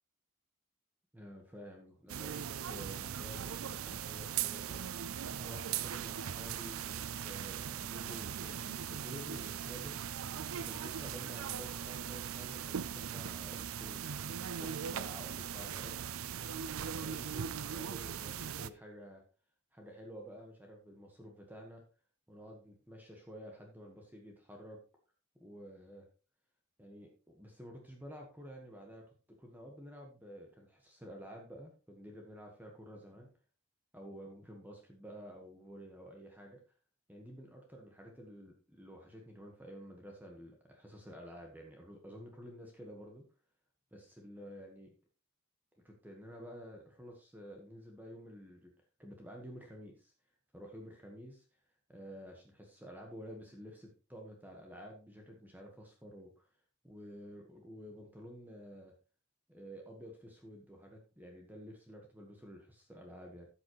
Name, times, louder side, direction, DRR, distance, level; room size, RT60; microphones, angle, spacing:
voice 1, 1.1-4.8 5.4-10.0 10.6-14.1 14.6-16.0 16.7-19.2 19.7-21.8 22.3-24.8 25.4-26.1 26.8-33.3 33.9-36.6 37.1-43.2 43.9-44.9 45.8-48.7 49.0-50.1 50.5-51.4 51.9-56.5 56.8-58.9 59.5-63.5, equal, 10° right, 1 dB, 1.4 m, -51 dB
sound 1, 2.1-18.7, right 8 dB, 85° right, 0.5 m, -39 dB
13.0 x 7.3 x 3.1 m, 0.35 s
head